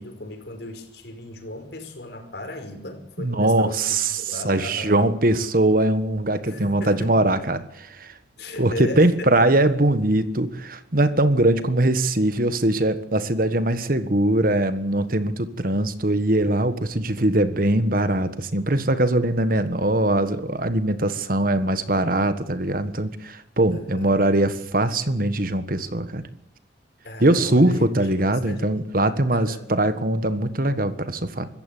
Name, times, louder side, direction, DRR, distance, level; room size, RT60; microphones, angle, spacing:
voice 1, 0.0-5.0 6.5-7.2 8.4-9.5 23.7-24.1 27.0-28.9 29.3-29.6, left 1 dB, 60° left, 5 dB, 5.2 m, -36 dB
voice 2, 3.2-8.2 8.6-26.2 27.2-31.5, right 1 dB, 50° right, 12 dB, 1.5 m, -21 dB
25.0 x 15.0 x 8.5 m, 0.81 s
head